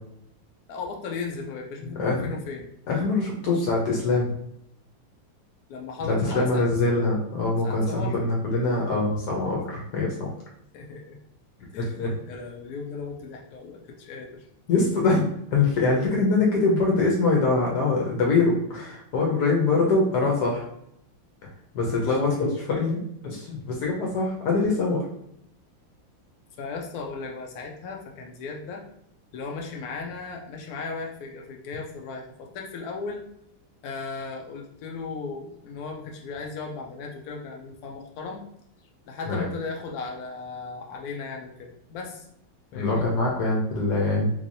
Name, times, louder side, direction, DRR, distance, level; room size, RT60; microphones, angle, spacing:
voice 1, 0.7-2.7 5.7-7.2 7.6-8.1 10.7-11.2 11.7-14.4 21.9-22.3 26.6-28.8 29.3-33.2 33.8-38.4 39.0-42.3 42.7-43.0, left 4 dB, 90° left, 1 dB, 0.8 m, -36 dB
voice 2, 2.9-4.3 6.1-10.3 11.8-12.1 14.7-15.2 15.5-20.6 21.7-25.0 39.3-39.5 42.7-44.3, left 3 dB, 65° left, -2 dB, 1.1 m, -23 dB
3.5 x 3.2 x 2.6 m, 0.73 s
omnidirectional pair, 2.3 m